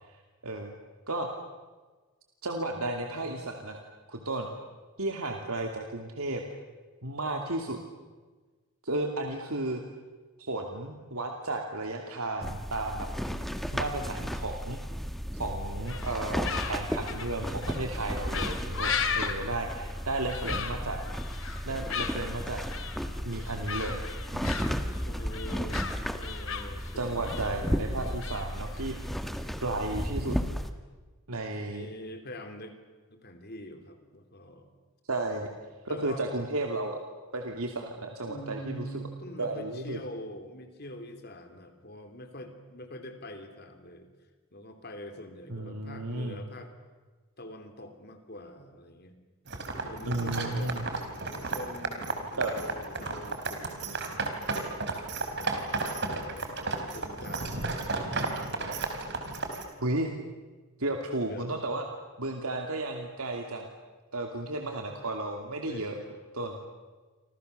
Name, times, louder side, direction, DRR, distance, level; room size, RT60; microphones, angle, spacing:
voice 1, 2.4-3.8 4.1-4.5 5.0-6.4 7.0-7.8 8.8-9.8 10.4-13.1 13.7-14.8 15.3-21.0 21.6-22.6 23.2-24.0 24.3-24.6 27.0-29.0 29.6-30.4 31.3-31.9 35.1-35.5 35.8-37.0 37.3-39.1 39.4-40.0 45.5-46.4 50.1-50.8 52.4-52.5 59.8-60.1 60.8-61.8 62.2-63.7 64.1-66.0 66.3-66.6, right 2 dB, 80° right, 3 dB, 2.7 m, -33 dB
sound 1, 12.4-30.7, equal, ahead, 1.5 m, -34 dB
sound 2, 15.9-29.2, left 6 dB, 60° left, 2.9 m, -37 dB
voice 2, 25.1-27.4 31.6-32.8 33.1-34.7 35.9-36.3 38.2-44.1 44.5-46.7 47.4-49.2 49.7-50.8 51.2-54.2 56.9-57.8 61.3-61.5 65.6-65.9, equal, 45° left, 6 dB, 3.4 m, -44 dB
sound 3, 49.5-59.6, right 3 dB, 50° right, 4.1 m, -34 dB
30.0 x 26.0 x 6.8 m, 1.3 s
head